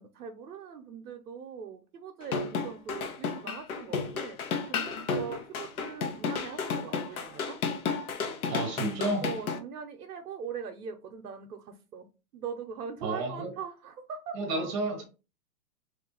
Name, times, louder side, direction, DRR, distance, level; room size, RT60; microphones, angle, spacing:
voice 1, 0.0-4.4 4.7-7.6 9.2-12.1 12.3-14.4, right 6 dB, 90° right, 0.7 m, -41 dB
sound 1, 2.2-9.6, left 5 dB, 70° left, 0.9 m, -32 dB
voice 2, 8.5-9.3 13.0-13.5 14.3-15.0, right 2 dB, 20° right, 0.7 m, -31 dB
3.3 x 2.5 x 3.7 m
hypercardioid pair, 155°, 45 cm